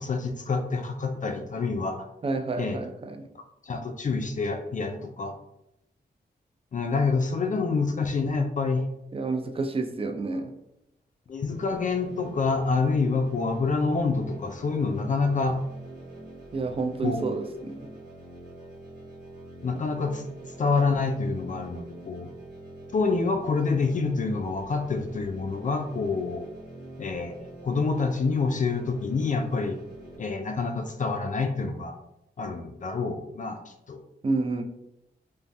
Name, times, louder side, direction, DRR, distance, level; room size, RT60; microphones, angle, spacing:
voice 1, 0.0-2.1 2.6-2.8 3.3-5.3 6.7-8.8 11.3-15.6 17.0-17.6 19.6-20.2 20.6-22.3 22.9-26.5 27.0-29.8 30.2-31.9 32.4-34.0, left 4 dB, 45° left, 5 dB, 0.4 m, -27 dB
voice 2, 2.2-3.2 9.1-10.5 16.5-17.8 34.2-34.6, right 3 dB, 30° right, 6 dB, 0.4 m, -29 dB
sound 1, 11.5-30.2, right 1 dB, 70° right, 1.0 m, -45 dB
2.5 x 2.1 x 3.2 m, 0.85 s
cardioid pair, 50°, 18 cm